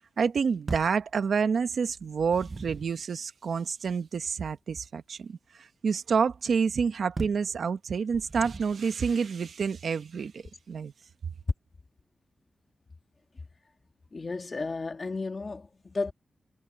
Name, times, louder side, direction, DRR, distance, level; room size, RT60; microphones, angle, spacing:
voice 1, 0.2-10.9, right 6 dB, 65° right, 1.2 m, -28 dB
sound 1, 0.7-1.1 2.0-3.0 7.2-7.5 8.1-8.9, right 3 dB, 30° right, 0.9 m, -38 dB
voice 2, 14.1-16.1, left 3 dB, 30° left, 1.9 m, -33 dB
wide cardioid pair, 175°, 0 cm